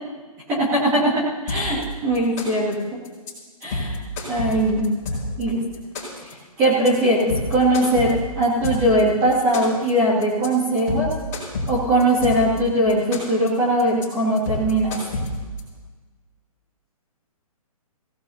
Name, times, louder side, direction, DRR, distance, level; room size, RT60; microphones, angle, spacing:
voice 1, 0.5-2.8 3.6-4.0 4.3-4.9 5.4-5.6 6.6-11.1 11.7-15.0, right 1 dB, 15° right, -8 dB, 2.3 m, -20 dB
sound 1, 1.5-1.8 2.1-2.7 3.0-3.3 3.6-5.4 5.7-6.3 6.6-6.9 7.2-9.0 9.3-9.9 10.2-10.5 10.8-12.6 12.9-13.5 13.8-14.0 14.4-15.6, left 2 dB, 25° left, 4.9 m, -28 dB
24.5 x 17.5 x 2.8 m, 1.4 s
hypercardioid pair, 180°, 19 cm